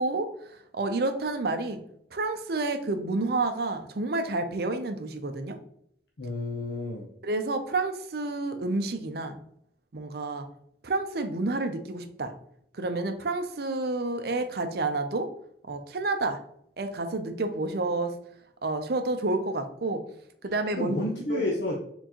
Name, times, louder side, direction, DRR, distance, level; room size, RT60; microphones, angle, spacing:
voice 1, 0.0-1.8 2.1-5.6 7.2-9.4 9.9-10.5 10.8-12.3 12.7-15.3 15.7-16.4 16.8-18.2 18.6-20.0 20.4-21.0 21.3-21.4, right 2 dB, 60° right, 7 dB, 0.6 m, -29 dB
voice 2, 6.2-7.1 20.8-21.8, left 2 dB, 75° left, -2 dB, 0.7 m, -30 dB
4.4 x 3.9 x 2.9 m, 0.68 s
head